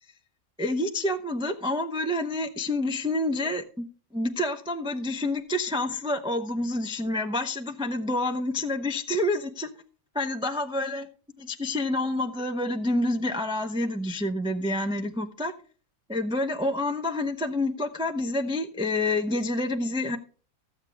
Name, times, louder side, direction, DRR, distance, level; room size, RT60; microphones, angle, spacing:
voice 1, 0.6-3.8 4.1-9.7 10.2-11.1 11.4-15.5 16.1-20.2, left 1 dB, 5° right, 0.6 m, -28 dB
14.0 x 8.1 x 3.4 m
omnidirectional pair, 1.5 m